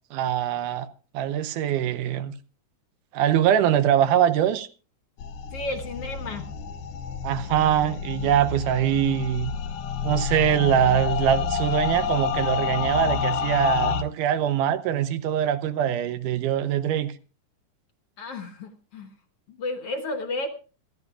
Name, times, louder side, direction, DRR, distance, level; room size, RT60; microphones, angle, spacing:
voice 1, 0.1-0.9 1.1-2.3 3.1-4.7 7.2-9.5 10.0-17.1, right 10 dB, 80° right, 2.3 m, -23 dB
sound 1, 5.2-14.0, left 6 dB, 90° left, 2.5 m, -29 dB
voice 2, 5.5-6.5 18.2-19.1 19.5-20.5, left 2 dB, 60° left, 1.7 m, -32 dB
26.5 x 11.0 x 2.4 m
omnidirectional pair, 3.7 m